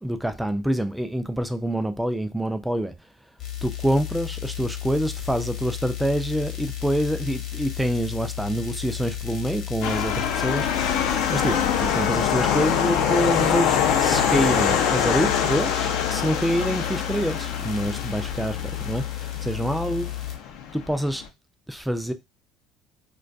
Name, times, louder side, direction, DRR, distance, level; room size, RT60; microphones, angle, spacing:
voice 1, 0.0-2.9 3.6-10.7 11.3-20.1 20.7-21.2 21.7-22.1, equal, 5° right, 0.4 m, -26 dB
sound 1, 3.4-20.4, left 12 dB, 50° left, 0.8 m, -33 dB
sound 2, 9.8-21.3, left 8 dB, 70° left, 0.4 m, -24 dB
2.2 x 2.2 x 2.5 m
supercardioid pair, 80°, 0 cm